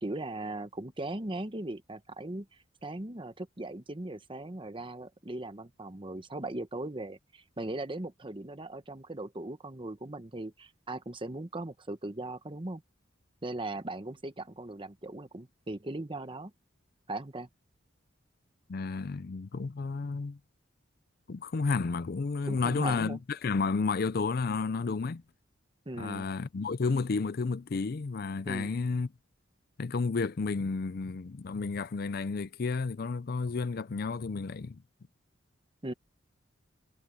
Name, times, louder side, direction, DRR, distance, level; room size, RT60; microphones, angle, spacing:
voice 1, 0.0-12.8 13.4-16.5 17.1-17.5 22.4-23.2 25.9-26.3 28.5-28.7 35.8-35.9, right 2 dB, 25° right, 1.0 m, -39 dB
voice 2, 18.7-20.4 21.3-25.2 26.0-29.1 29.8-34.8, left 4 dB, 50° left, 0.5 m, -31 dB
head